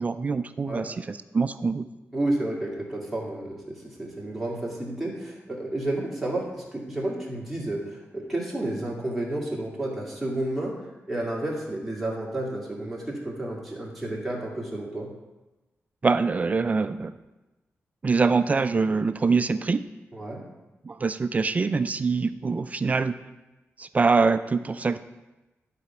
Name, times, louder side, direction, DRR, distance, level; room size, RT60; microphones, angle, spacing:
voice 1, 0.0-1.8 16.0-17.1 18.0-19.8 20.8-23.1 23.8-25.0, right 4 dB, 30° right, 11 dB, 0.3 m, -24 dB
voice 2, 2.1-15.1 20.1-20.4, right 1 dB, ahead, -4 dB, 2.1 m, -31 dB
11.5 x 4.2 x 5.9 m, 1.1 s
wide cardioid pair, 160°, 5 cm